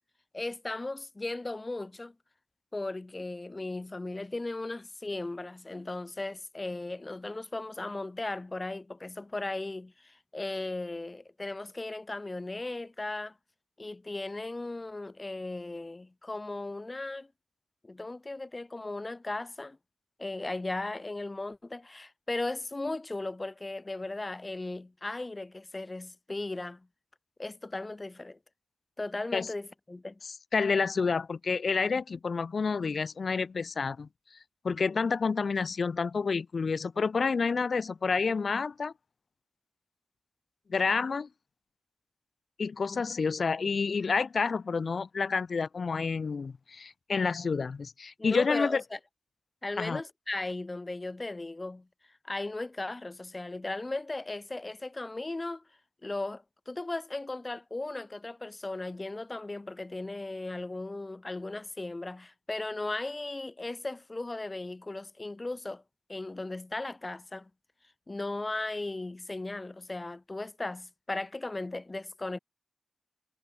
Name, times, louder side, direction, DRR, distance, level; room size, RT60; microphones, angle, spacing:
voice 1, 0.3-2.1 2.7-13.4 13.8-17.3 17.8-19.8 20.2-26.9 27.4-28.4 29.0-30.2 48.2-49.0 49.6-51.9 52.2-55.6 56.0-65.8 66.1-67.5 68.1-72.4, left 2 dB, 25° left, 6.1 m, -37 dB
voice 2, 30.2-34.1 34.6-38.9 40.7-41.3 42.6-48.8 49.8-50.0, left 5 dB, 60° left, 2.7 m, -29 dB
wide cardioid pair, 100°, 0 cm